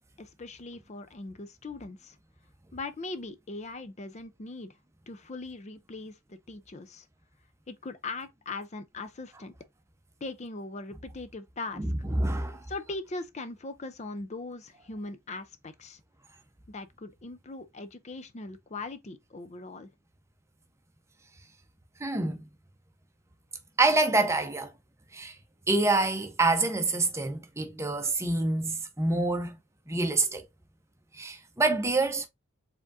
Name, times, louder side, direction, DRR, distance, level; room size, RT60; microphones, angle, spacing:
voice 1, 0.2-2.2 2.7-4.7 5.1-7.1 7.7-9.5 10.2-11.9 12.7-16.0 16.7-19.9, left 3 dB, 30° left, 0.5 m, -40 dB
voice 2, 11.8-12.7 22.0-22.4 23.8-24.7 25.1-25.4 25.7-29.6 29.9-30.4 31.1-32.3, right 2 dB, 15° right, 0.7 m, -26 dB
4.9 x 3.6 x 2.5 m
head